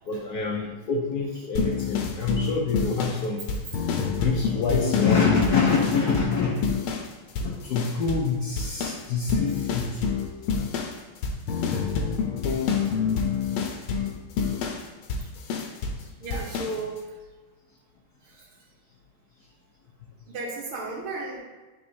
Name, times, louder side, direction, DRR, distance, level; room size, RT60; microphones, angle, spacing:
voice 1, 0.1-3.5 4.1-6.8 7.4-10.1 13.3-13.4, left 4 dB, 65° left, -1 dB, 1.0 m, -26 dB
sound 1, 1.6-7.1 7.4-8.3 8.6-16.0 16.3-16.8, left 6 dB, 85° left, 1.6 m, -27 dB
voice 2, 16.2-17.0 18.3-18.4 20.3-21.4, right 3 dB, 85° right, -1 dB, 2.0 m, -34 dB
9.5 x 4.2 x 2.7 m, 1.3 s
omnidirectional pair, 2.3 m